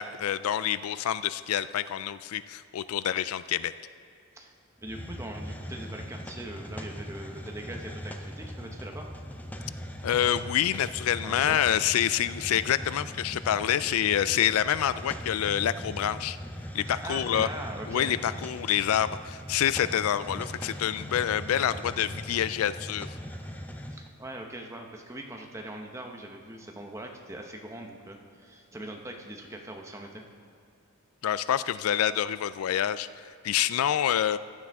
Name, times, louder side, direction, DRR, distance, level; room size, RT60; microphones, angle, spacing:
voice 1, 0.0-3.7 10.0-16.4 16.7-17.5 17.9-23.1 31.2-33.1 33.4-34.4, left 10 dB, 80° left, 15 dB, 0.3 m, -27 dB
Hiss, 4.8-24.1, equal, 10° left, 0.5 m, -40 dB
voice 2, 4.8-9.1 11.2-11.6 16.9-18.1 23.9-30.2, right 1 dB, 15° right, 2 dB, 0.9 m, -41 dB
15.0 x 10.5 x 3.6 m, 2.4 s
head